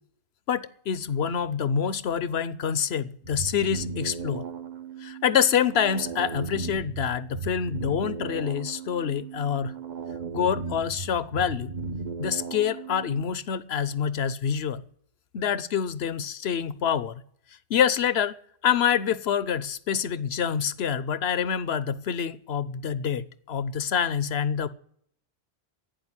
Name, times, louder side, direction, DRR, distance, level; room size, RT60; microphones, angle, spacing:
voice 1, 0.5-4.4 5.0-9.7 10.3-11.7 12.2-14.9 15.3-17.2 17.7-18.4 18.6-24.7, left 8 dB, 70° left, 1.0 m, -26 dB
sound 1, 3.2-13.2, right 5 dB, 45° right, 0.9 m, -36 dB
12.0 x 9.2 x 9.8 m
omnidirectional pair, 1.1 m